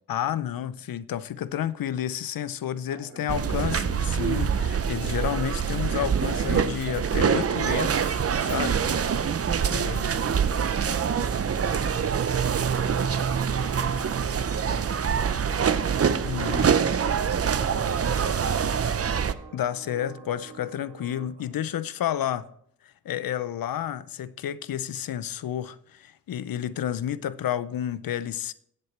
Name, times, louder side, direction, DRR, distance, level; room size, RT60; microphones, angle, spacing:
voice 1, 0.1-8.8 9.7-10.1 16.2-16.7 19.5-22.5 22.8-28.5, left 10 dB, 70° left, 0.6 m, -31 dB
voice 2, 2.9-3.6 8.7-9.4 16.0-17.2 17.5-19.4 21.3-21.5, right 3 dB, 65° right, 4.3 m, -46 dB
sound 1, 3.3-19.3, right 7 dB, 40° right, 0.6 m, -25 dB
sound 2, 6.9-21.3, right 7 dB, 90° right, 1.1 m, -47 dB
16.0 x 7.8 x 3.3 m
cardioid pair, 45°, 36 cm